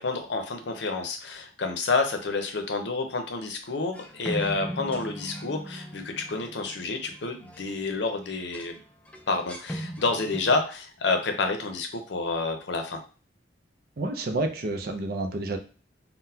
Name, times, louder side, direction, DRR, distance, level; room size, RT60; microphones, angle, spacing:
voice 1, 0.0-8.8 9.3-13.0, left 3 dB, 70° left, 5 dB, 0.6 m, -29 dB
sound 1, 3.9-7.9 8.2-8.7 9.1-10.6, right 1 dB, 5° left, 0.4 m, -38 dB
voice 2, 14.0-15.6, right 2 dB, 55° right, 5 dB, 0.5 m, -29 dB
3.8 x 2.1 x 2.7 m, 0.35 s
head